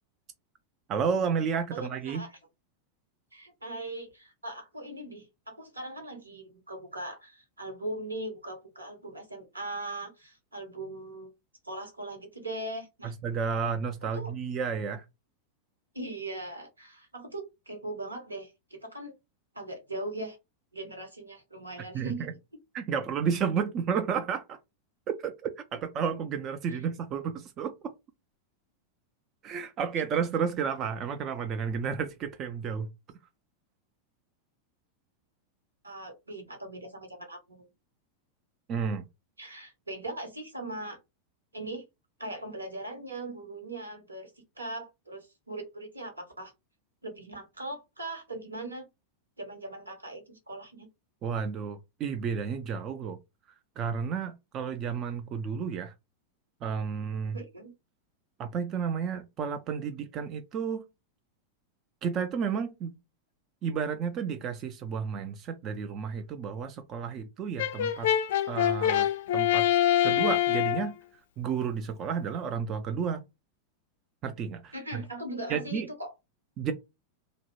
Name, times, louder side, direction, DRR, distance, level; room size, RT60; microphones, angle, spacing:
voice 1, 0.9-2.2 13.0-15.0 21.9-22.3 22.7-24.6 25.1-27.7 29.4-32.9 38.7-39.1 51.2-53.2 53.8-55.9 56.6-57.4 58.4-60.8 62.0-63.0 63.6-68.1 68.5-69.1 69.3-69.7 70.0-70.9 71.4-73.2 74.2-75.0 75.5-75.9 76.6-76.7, right 6 dB, 30° right, 0.3 m, -31 dB
voice 2, 1.7-2.4 3.3-11.3 11.6-13.1 14.1-14.3 15.9-19.1 19.5-20.4 20.7-22.3 26.7-26.8 35.8-37.7 39.4-41.0 41.5-41.8 42.2-44.3 44.6-46.5 47.0-48.9 49.4-50.9 57.3-57.7 74.7-76.1, right 2 dB, 80° right, 0.8 m, -40 dB
Brass instrument, 67.6-70.9, left 11 dB, 55° left, 0.4 m, -25 dB
2.5 x 2.0 x 2.8 m
figure-of-eight pair, 90°, 0 cm